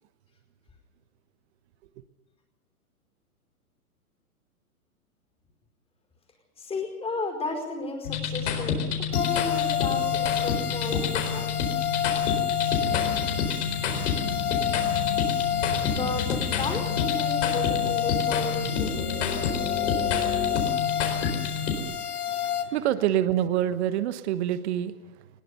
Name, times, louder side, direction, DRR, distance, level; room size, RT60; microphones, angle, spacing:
voice 1, 6.6-8.8 9.1-11.5 15.9-18.9, left 3 dB, 15° left, 2 dB, 4.9 m, -33 dB
sound 1, 8.1-21.7, left 6 dB, 50° left, 4.4 m, -28 dB
sound 2, 9.1-22.6, left 9 dB, 75° left, 2.4 m, -29 dB
voice 2, 22.3-24.9, right 11 dB, 45° right, 12 dB, 1.2 m, -26 dB
21.0 x 19.5 x 6.9 m, 1.1 s
hypercardioid pair, 125°, 44 cm